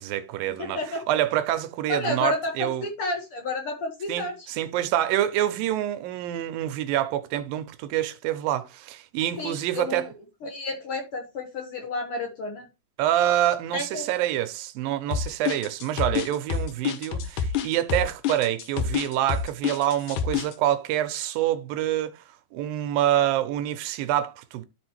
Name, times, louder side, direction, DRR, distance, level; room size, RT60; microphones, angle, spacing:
voice 1, 0.0-2.9 4.1-10.1 13.0-22.2 22.5-24.6, right 12 dB, 80° right, 2.3 m, -26 dB
voice 2, 0.6-1.0 1.9-4.4 9.4-10.0 10.4-12.7 13.7-14.1, left 2 dB, 60° left, 1.5 m, -31 dB
sound 1, 15.1-20.5, left 7 dB, 75° left, 2.2 m, -27 dB
12.5 x 4.3 x 3.0 m
omnidirectional pair, 4.3 m